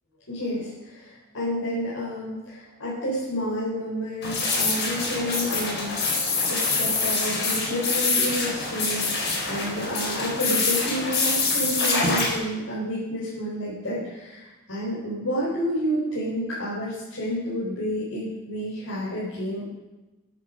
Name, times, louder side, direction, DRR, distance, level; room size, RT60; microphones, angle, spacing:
voice 1, 0.3-6.2 6.5-19.6, equal, 85° left, -8 dB, 4.3 m, -30 dB
sound 1, 4.2-12.3, left 3 dB, 60° left, 4.7 m, -25 dB
12.5 x 10.5 x 5.2 m, 1.1 s
head